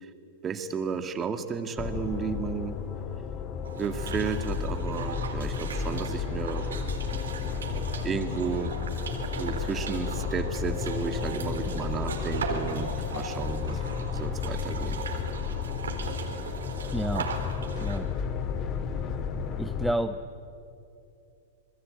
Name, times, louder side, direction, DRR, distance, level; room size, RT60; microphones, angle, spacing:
voice 1, 0.4-2.8 3.7-6.7 8.0-8.7 9.4-13.8 14.1-15.0, right 6 dB, 25° right, 8 dB, 2.1 m, -33 dB
sound 1, 1.8-19.9, left 6 dB, 35° left, 2.0 m, -32 dB
sound 2, 3.6-18.0, right 5 dB, 85° right, 3.9 m, -38 dB
sound 3, 7.4-15.3, left 3 dB, 70° left, 6.3 m, -46 dB
voice 2, 16.9-17.3 17.8-18.1 19.6-20.2, right 1 dB, 5° right, 9 dB, 0.7 m, -30 dB
27.0 x 21.0 x 8.9 m, 2.6 s
hypercardioid pair, 115°, 0 cm